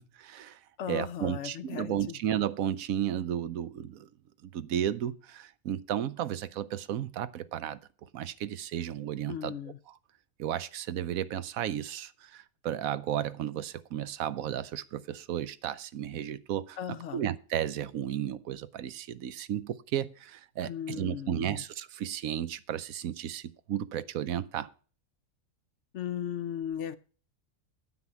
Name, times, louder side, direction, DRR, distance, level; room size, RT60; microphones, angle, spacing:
voice 1, 0.0-0.6 0.9-4.1 4.4-7.8 8.1-9.5 10.4-24.7, right 10 dB, 80° right, 1.1 m, -33 dB
voice 2, 0.8-2.1 9.3-9.8 16.8-17.2 20.6-21.6 25.9-27.0, left 9 dB, 65° left, 0.9 m, -36 dB
9.5 x 6.0 x 7.1 m
omnidirectional pair, 1.5 m